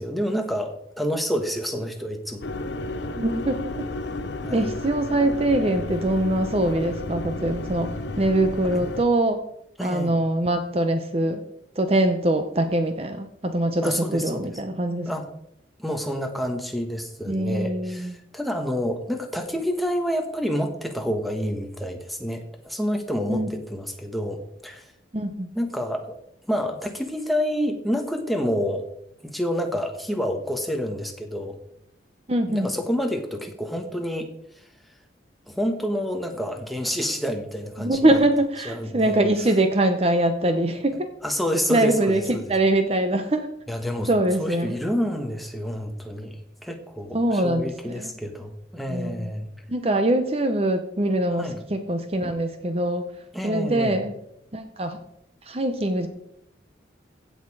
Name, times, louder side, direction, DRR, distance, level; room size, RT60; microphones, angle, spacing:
voice 1, 0.0-2.4 4.4-4.7 8.7-8.8 9.8-10.2 13.8-14.5 15.0-15.3 15.8-24.9 25.5-26.2 26.5-28.8 29.2-31.6 32.5-34.3 35.5-38.1 38.6-39.2 41.2-42.5 43.7-44.1 44.4-49.5 51.3-51.6 53.3-54.0, equal, ahead, 4 dB, 1.2 m, -28 dB
sound 1, 2.4-9.0, left 2 dB, 75° left, 0.9 m, -32 dB
voice 2, 3.1-3.9 4.5-9.4 9.8-11.4 11.8-15.1 17.3-18.2 23.3-23.5 25.1-25.5 32.3-32.7 37.8-41.1 41.7-43.5 44.1-44.8 47.1-48.1 48.9-49.3 49.7-53.0 53.4-54.1 54.5-55.0 55.5-56.1, right 1 dB, 30° right, 8 dB, 0.8 m, -23 dB
16.0 x 6.6 x 4.8 m, 0.76 s
head